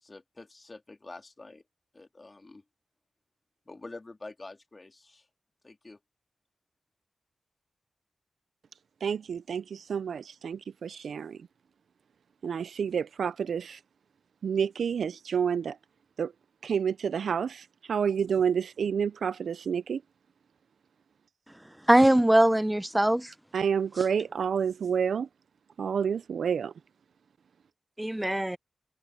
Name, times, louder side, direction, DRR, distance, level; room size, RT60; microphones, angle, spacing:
voice 1, 0.0-1.6 1.9-2.6 3.7-5.3 5.6-6.0, left 3 dB, 30° left, 2.9 m, -47 dB
voice 2, 9.0-11.4 12.4-13.8 14.4-15.8 16.2-16.3 16.6-20.0 23.5-25.3 25.8-26.7, right 7 dB, 90° right, 0.3 m, -29 dB
voice 3, 21.9-23.3 28.0-28.6, right 1 dB, 10° right, 0.5 m, -21 dB
wide cardioid pair, 115°, 0 cm